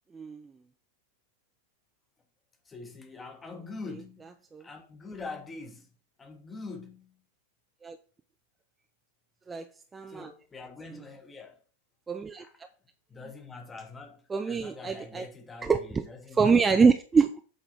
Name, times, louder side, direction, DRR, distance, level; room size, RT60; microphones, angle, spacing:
voice 1, 0.1-0.5 4.5-4.6 7.8-8.0 9.5-9.6 9.9-10.3 12.1-12.5 14.3-15.3 15.6-16.0 16.4-17.4, right 5 dB, 15° right, 0.5 m, -25 dB
voice 2, 2.6-5.9 6.2-7.2 10.1-11.6 12.4-12.7 13.1-16.8, left 3 dB, 15° left, 1.3 m, -44 dB
8.1 x 3.7 x 4.7 m
figure-of-eight pair, 90°, 0 cm